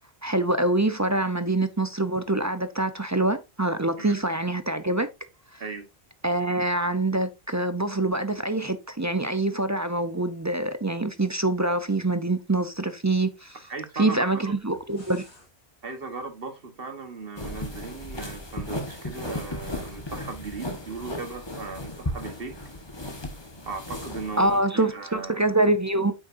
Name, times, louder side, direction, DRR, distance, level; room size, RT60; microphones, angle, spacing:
voice 1, 0.2-5.1 5.5-5.6 6.2-13.6 14.0-15.2 24.4-26.1, right 2 dB, 20° right, 0.5 m, -25 dB
voice 2, 13.7-14.5 15.8-22.5 23.7-25.5, right 4 dB, 60° right, 1.5 m, -37 dB
sound 1, 14.6-15.5, left 2 dB, 90° left, 2.8 m, -52 dB
sound 2, 17.4-24.6, left 1 dB, 25° left, 1.4 m, -36 dB
8.7 x 6.3 x 2.6 m
omnidirectional pair, 1.1 m